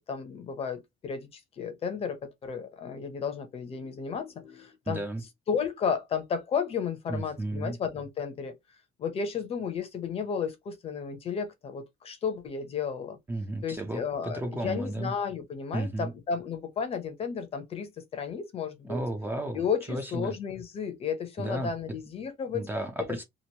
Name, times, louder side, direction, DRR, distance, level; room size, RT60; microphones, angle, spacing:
voice 1, 0.1-5.0 5.5-8.5 9.0-13.2 13.6-19.0 19.5-22.7, left 6 dB, 35° left, 0.7 m, -33 dB
voice 2, 4.9-5.2 7.1-7.8 13.3-15.1 15.7-16.1 18.8-19.6 19.9-20.3 21.4-21.7 22.5-23.2, right 1 dB, 10° right, 0.4 m, -33 dB
3.0 x 2.5 x 2.8 m
cardioid pair, 170°, 17 cm